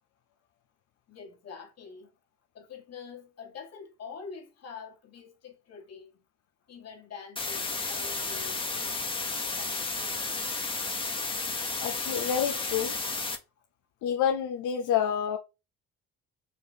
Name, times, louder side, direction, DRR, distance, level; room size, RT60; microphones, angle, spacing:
voice 1, 1.1-2.1 2.5-6.2 6.7-9.1 9.6-9.9, left 5 dB, 55° left, 1.7 m, -45 dB
sound 1, 7.4-13.4, left 3 dB, 15° left, 1.1 m, -32 dB
voice 2, 11.8-13.0 14.0-15.4, left 8 dB, 85° left, 0.6 m, -28 dB
5.0 x 2.5 x 4.1 m
cardioid pair, 90°, 30 cm